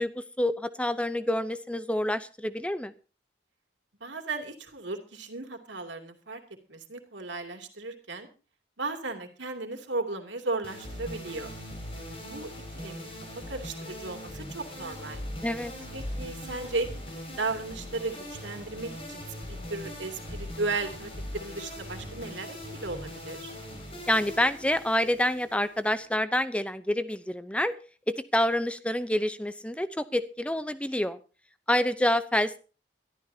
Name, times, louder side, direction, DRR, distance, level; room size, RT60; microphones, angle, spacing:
voice 1, 0.0-2.9 15.4-15.7 24.1-27.7 28.1-31.2 31.7-32.6, left 1 dB, 5° left, 12 dB, 0.7 m, -27 dB
voice 2, 4.0-6.4 6.7-8.3 8.8-11.5 12.2-12.5 12.8-13.1 13.5-15.2 15.9-16.9 17.3-19.2 19.5-23.5, right 3 dB, 80° right, 5 dB, 2.8 m, -35 dB
sound 1, 10.6-26.0, equal, 30° left, 5.9 m, -40 dB
23.0 x 13.5 x 2.8 m, 0.35 s
head